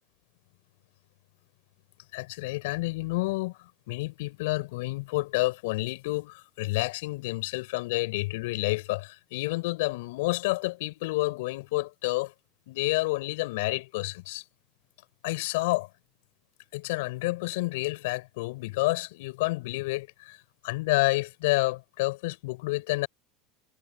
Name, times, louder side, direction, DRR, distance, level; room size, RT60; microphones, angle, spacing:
voice 1, 2.1-3.5 3.9-12.3 12.7-14.4 15.2-15.9 16.7-20.1 20.6-23.1, left 22 dB, 70° left, 4.8 m, -29 dB
hypercardioid pair, 80°, 0 cm